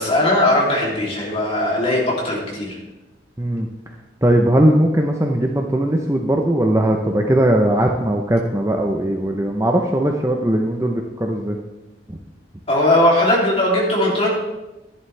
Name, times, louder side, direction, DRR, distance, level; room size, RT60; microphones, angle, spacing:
voice 1, 0.0-2.8 12.7-14.3, left 1 dB, 30° left, -3 dB, 2.8 m, -18 dB
voice 2, 4.2-11.6 12.1-12.2, right 1 dB, 15° right, 2 dB, 0.7 m, -19 dB
11.0 x 11.0 x 3.3 m, 1.0 s
head